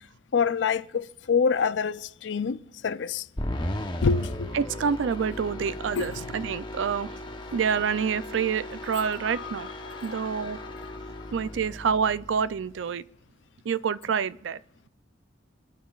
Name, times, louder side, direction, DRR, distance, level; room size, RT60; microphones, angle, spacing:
voice 1, 0.3-2.6 2.8-3.2 4.0-4.6 6.0-6.1 8.9-9.5 9.8-10.9, left 5 dB, 80° left, 0.5 m, -27 dB
sound 1, 3.4-12.7, left 1 dB, 25° left, 0.9 m, -37 dB
voice 2, 4.5-7.2 7.5-9.7 10.0-10.6 11.3-13.0 13.6-14.6, right 6 dB, 90° right, 0.4 m, -27 dB
26.5 x 10.5 x 2.4 m
head